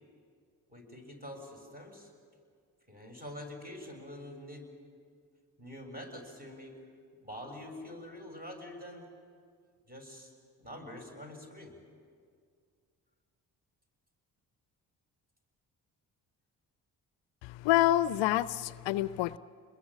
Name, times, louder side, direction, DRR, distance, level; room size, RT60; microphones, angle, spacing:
voice 1, 0.7-2.1 2.9-4.7 5.6-6.8 7.2-9.1 9.9-10.3 10.6-11.8, left 1 dB, 20° right, 7.2 m, -45 dB
voice 2, 17.4-19.4, left 14 dB, 70° left, 0.6 m, -27 dB
27.5 x 21.5 x 7.5 m
hypercardioid pair, 45°, 46 cm